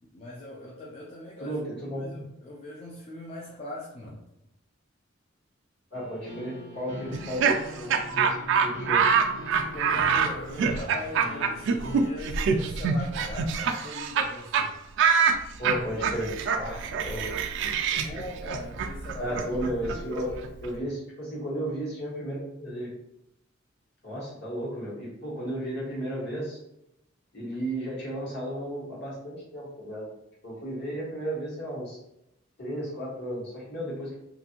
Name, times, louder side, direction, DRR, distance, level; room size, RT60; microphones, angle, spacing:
voice 1, 0.0-4.3 9.5-14.8 18.0-20.5, left 1 dB, 30° left, -3 dB, 0.4 m, -41 dB
voice 2, 1.4-2.2 5.9-7.5 7.8-8.3 8.6-9.0 15.6-17.3 19.2-20.3 20.6-22.9 24.0-26.6 27.3-30.1 30.4-32.0 32.6-34.2, equal, 55° left, -6 dB, 1.3 m, -34 dB
sound 1, 5.9-12.1, equal, 75° left, 1.3 m, -41 dB
Laughter, 7.1-14.3 14.5-14.7 15.0-20.7, right 6 dB, 65° right, 0.3 m, -25 dB
2.5 x 2.5 x 2.8 m, 0.85 s
head